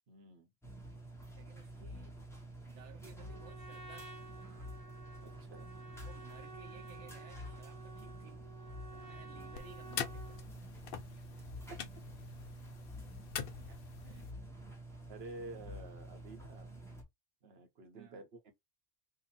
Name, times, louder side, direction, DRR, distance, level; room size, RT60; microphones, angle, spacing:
voice 1, 0.1-0.5 5.2-5.7 8.9-9.2 14.6-14.7 15.1-16.7 17.4-18.5, right 2 dB, 60° right, 1.3 m, -51 dB
sound 1, 0.6-17.0, right 1 dB, 5° left, 0.9 m, -49 dB
voice 2, 1.3-2.2 2.6-4.3 6.0-8.5 9.0-10.4 13.7-14.3 16.0-16.1 17.9-18.2, right 8 dB, 80° right, 0.9 m, -58 dB
Trumpet, 3.2-10.5, right 2 dB, 30° right, 1.0 m, -53 dB
sound 2, 9.5-14.3, left 7 dB, 60° left, 0.7 m, -45 dB
2.9 x 2.6 x 4.0 m
omnidirectional pair, 1.2 m